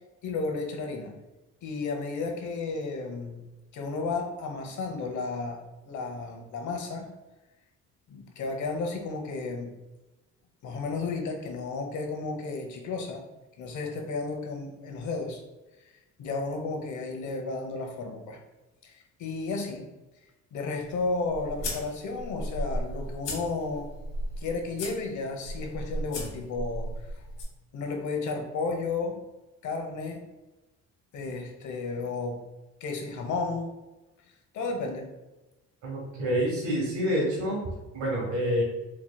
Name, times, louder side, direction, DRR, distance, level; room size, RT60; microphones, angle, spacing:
voice 1, 0.2-1.1 1.6-3.4 3.7-7.1 8.1-9.7 10.6-13.2 13.6-15.4 16.2-18.4 18.8-19.9 20.5-23.9 24.4-27.2 27.7-29.2 29.6-30.2 31.1-32.4 32.8-33.7 34.5-35.1, left 3 dB, 70° left, 2 dB, 0.9 m, -33 dB
sound 1, 20.8-27.4, equal, 85° left, 1.2 m, -36 dB
voice 2, 35.8-37.7 37.9-38.6, equal, 70° right, -3 dB, 1.3 m, -27 dB
4.3 x 3.0 x 2.2 m, 1.1 s
cardioid pair, 90°, 30 cm